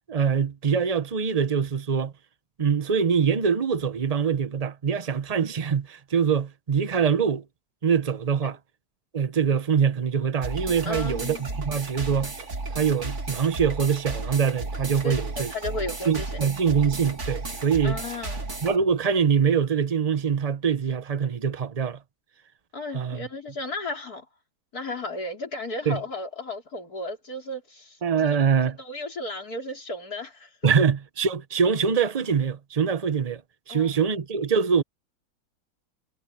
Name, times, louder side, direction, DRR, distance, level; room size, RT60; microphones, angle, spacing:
voice 1, 0.1-2.1 2.6-7.4 7.8-8.6 9.1-12.3 12.7-15.5 16.1-18.0 18.6-22.0 22.9-23.2 25.9-26.0 28.0-28.8 30.6-33.4 33.7-34.8, right 6 dB, 55° right, 0.4 m, -24 dB
sound 1, 10.4-18.8, right 3 dB, 35° right, 2.7 m, -34 dB
voice 2, 10.8-11.6 15.0-15.2 15.5-16.4 17.8-18.5 22.7-24.3 24.7-28.4 28.8-30.7 33.7-34.0, left 2 dB, 50° left, 4.6 m, -34 dB
omnidirectional pair, 2.1 m